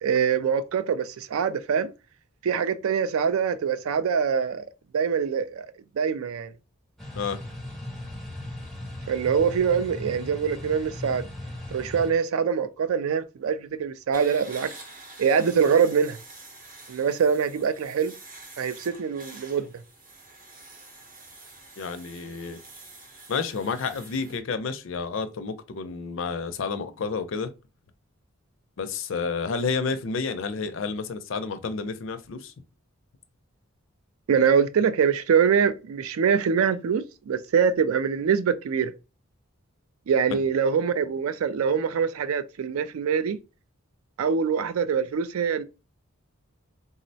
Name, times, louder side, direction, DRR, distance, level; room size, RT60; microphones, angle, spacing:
voice 1, 0.0-1.9 2.4-4.7 4.9-5.7 6.0-6.5 9.1-11.3 11.7-14.7 15.2-16.2 16.9-18.1 18.6-19.7 34.3-38.9 40.1-43.4 44.2-45.6, right 6 dB, 80° right, 0.3 m, -24 dB
sound 1, 7.0-12.1, left 1 dB, ahead, 0.5 m, -38 dB
sound 2, 14.1-24.4, right 2 dB, 40° right, 0.7 m, -47 dB
voice 2, 21.8-22.6 23.3-27.5 28.8-32.5 40.3-40.4, left 5 dB, 65° left, 0.4 m, -30 dB
3.7 x 2.0 x 2.6 m
head